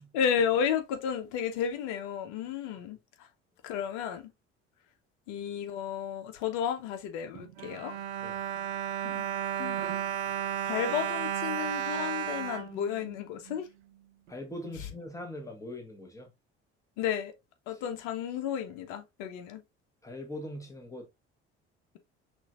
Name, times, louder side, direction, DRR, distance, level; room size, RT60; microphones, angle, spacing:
voice 1, 0.1-3.0 3.6-4.3 5.3-7.9 9.0-9.2 9.6-9.9 10.7-13.7 17.0-17.3 17.7-19.6, left 8 dB, 65° left, 0.9 m, -32 dB
Bowed string instrument, 7.3-13.6 14.3-14.4 14.7-14.8, right 9 dB, 75° right, 0.6 m, -34 dB
voice 2, 14.3-16.3 17.7-17.8 20.0-21.1, left 1 dB, 10° left, 1.5 m, -41 dB
6.0 x 2.7 x 2.5 m
figure-of-eight pair, 55°, 33 cm